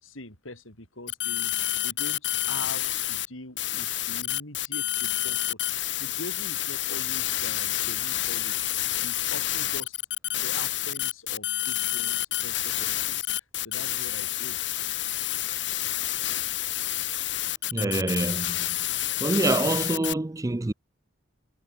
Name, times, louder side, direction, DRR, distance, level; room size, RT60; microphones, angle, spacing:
voice 1, 0.0-1.5 1.8-8.7 9.0-9.9 10.4-13.3 13.6-14.6, left 2 dB, 85° left, 6.6 m, -43 dB
sound 1, 1.1-3.3 3.6-20.1, left 14 dB, 60° left, 3.0 m, -29 dB
voice 2, 17.7-18.7 19.2-20.7, right 2 dB, 15° right, 0.4 m, -26 dB
head